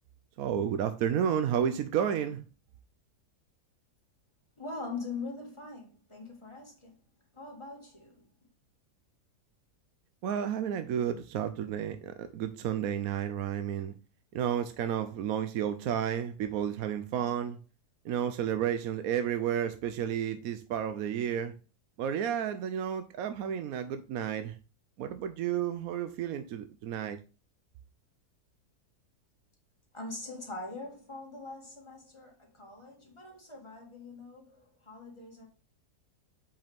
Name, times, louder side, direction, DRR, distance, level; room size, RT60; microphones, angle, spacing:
voice 1, 0.4-2.4 10.2-13.9 14.3-17.6 18.0-21.6 22.0-24.6 25.0-27.2, right 9 dB, 70° right, 1.0 m, -31 dB
voice 2, 4.6-7.0 7.3-8.3 29.9-35.5, left 3 dB, 20° left, 1.7 m, -42 dB
7.6 x 4.9 x 3.5 m
omnidirectional pair, 1.7 m